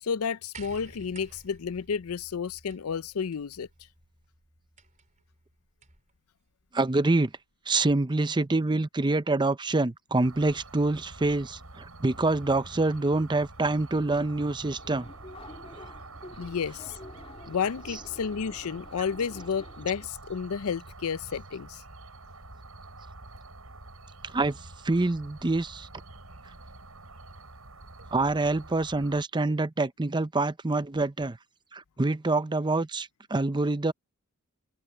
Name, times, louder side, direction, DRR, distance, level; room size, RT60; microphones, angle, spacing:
voice 1, 0.0-3.7 16.4-16.9 17.5-21.8, left 6 dB, 80° left, 0.5 m, -31 dB
sound 1, 0.5-6.1 7.2-7.3, right 3 dB, 35° right, 3.8 m, -53 dB
voice 2, 6.7-7.3 7.7-15.1 24.2-24.6 24.8-25.9 28.1-31.4 31.7-33.9, right 2 dB, 20° right, 0.6 m, -26 dB
sound 2, 10.2-29.2, right 2 dB, 85° right, 5.8 m, -47 dB
Subway metro underground, 14.4-20.1, left 2 dB, 25° left, 2.4 m, -49 dB
open air
head